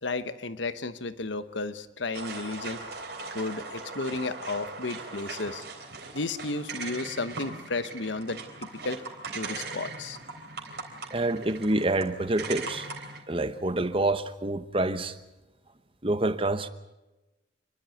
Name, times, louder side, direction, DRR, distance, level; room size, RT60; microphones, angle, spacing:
voice 1, 0.0-2.8 3.3-5.6 6.1-9.0 9.3-10.2, left 3 dB, 70° left, 1.1 m, -33 dB
sound 1, 2.1-13.2, right 4 dB, 55° right, 3.6 m, -40 dB
voice 2, 11.1-12.9 13.3-15.1 16.0-16.7, right 2 dB, 30° right, 1.0 m, -27 dB
27.5 x 12.0 x 9.2 m
head